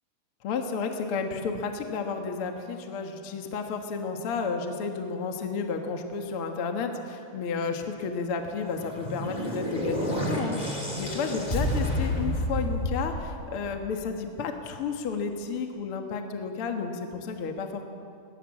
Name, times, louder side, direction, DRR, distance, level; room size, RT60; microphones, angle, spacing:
voice 1, 0.4-17.8, left 5 dB, 50° left, 4 dB, 2.0 m, -32 dB
sound 1, 8.6-14.0, equal, 15° left, 2.9 m, -30 dB
21.5 x 20.0 x 7.4 m, 2.5 s
omnidirectional pair, 3.8 m